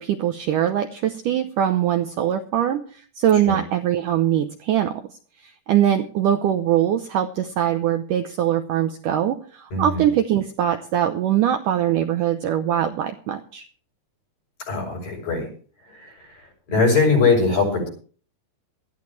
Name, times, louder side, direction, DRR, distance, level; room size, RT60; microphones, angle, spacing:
voice 1, 0.0-5.0 5.4-13.7, right 10 dB, 80° right, 7 dB, 1.9 m, -22 dB
voice 2, 9.7-10.0 14.7-15.5 16.7-17.9, left 4 dB, 55° left, 4 dB, 8.6 m, -20 dB
20.0 x 14.0 x 3.2 m, 0.42 s
omnidirectional pair, 4.7 m